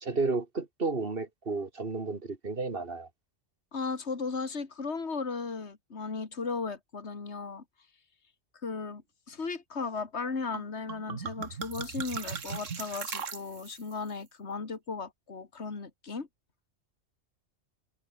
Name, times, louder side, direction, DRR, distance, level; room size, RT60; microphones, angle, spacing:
voice 1, 0.0-3.1, right 3 dB, 50° right, 2.5 m, -32 dB
voice 2, 3.7-7.6 8.6-9.0 9.3-16.3, left 4 dB, 60° left, 2.6 m, -36 dB
sound 1, 10.5-10.6 10.9-13.9, right 6 dB, 85° right, 1.9 m, -38 dB
omnidirectional pair, 1.3 m